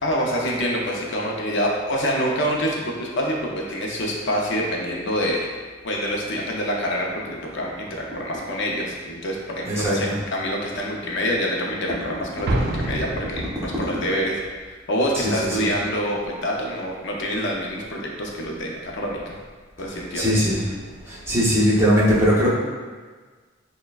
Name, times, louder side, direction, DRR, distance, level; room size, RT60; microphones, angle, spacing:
voice 1, 0.0-5.5 5.8-14.4 14.7-19.4 19.8-20.4, equal, 60° left, -2 dB, 0.5 m, -26 dB
voice 2, 9.7-10.0 15.2-15.7 20.1-20.6 21.1-22.5, equal, 15° right, -8 dB, 0.8 m, -20 dB
Explosion, 12.5-14.0, right 1 dB, 50° right, 0.4 m, -27 dB
6.3 x 2.2 x 2.3 m, 1.4 s
head